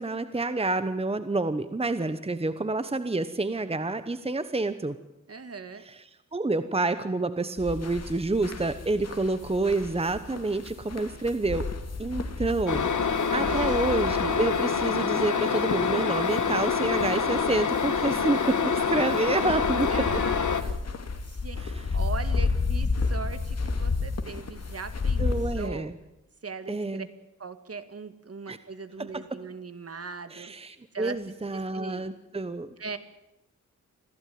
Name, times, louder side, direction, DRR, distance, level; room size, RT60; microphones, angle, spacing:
voice 1, 0.0-5.0 5.9-6.0 6.3-11.7 12.0-19.9 21.6-21.7 25.2-25.9 26.7-27.1 28.5-28.6 29.0-29.2 30.3-32.7, right 2 dB, 20° right, 11 dB, 1.1 m, -28 dB
voice 2, 5.3-5.8 13.4-13.8 19.9-20.8 21.3-21.6 21.9-25.3 25.6-25.9 26.4-27.0 27.4-30.5 30.9-31.2 31.5-32.0 32.8-33.0, right 4 dB, 50° right, 10 dB, 2.1 m, -39 dB
sound 1, 7.6-25.7, left 4 dB, 55° left, 2.4 m, -32 dB
sound 2, 12.7-20.6, left 6 dB, 75° left, 2.0 m, -26 dB
26.0 x 16.0 x 9.5 m, 0.92 s
wide cardioid pair, 120°, 31 cm